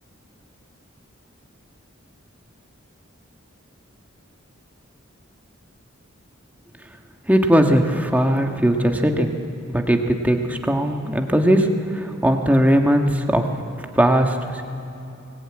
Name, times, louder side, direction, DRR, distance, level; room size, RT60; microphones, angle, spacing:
voice 1, 7.3-9.3 9.7-11.7 11.9-13.5 13.9-14.6, equal, 10° right, 3 dB, 1.5 m, -19 dB
23.5 x 19.5 x 8.9 m, 2.8 s
head